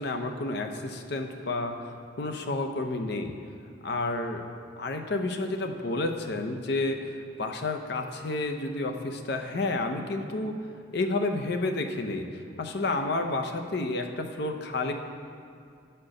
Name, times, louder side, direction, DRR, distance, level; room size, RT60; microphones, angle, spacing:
voice 1, 0.0-1.8 2.2-3.4 3.8-4.4 4.8-10.5 10.9-14.9, left 2 dB, 55° left, 5 dB, 0.6 m, -30 dB
9.8 x 4.5 x 6.4 m, 2.4 s
head